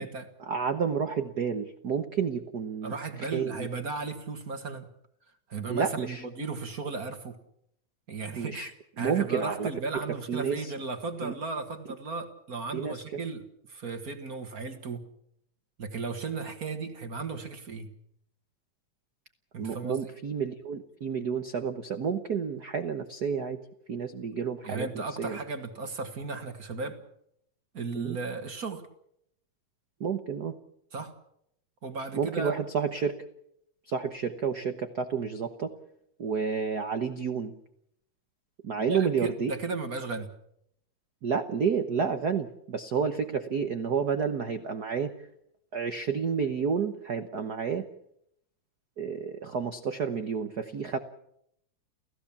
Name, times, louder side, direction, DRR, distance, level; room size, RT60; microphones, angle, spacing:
voice 1, 0.4-3.7 5.7-6.2 8.4-8.7 9.0-9.7 10.1-10.7 11.2-11.3 12.7-13.2 19.6-23.6 23.9-24.9 25.2-25.4 27.9-28.2 30.0-30.5 32.1-33.2 33.8-35.7 36.2-37.5 38.6-39.5 41.2-45.3 45.7-47.9 49.0-51.0, right 6 dB, 70° right, 8 dB, 0.9 m, -30 dB
voice 2, 2.8-4.9 5.5-7.4 8.1-15.0 15.8-17.9 19.5-20.1 24.6-27.0 27.7-28.8 30.9-31.1 31.8-32.6 38.9-40.3, right 4 dB, 35° right, 7 dB, 1.7 m, -35 dB
29.5 x 16.0 x 7.2 m, 0.75 s
omnidirectional pair, 3.5 m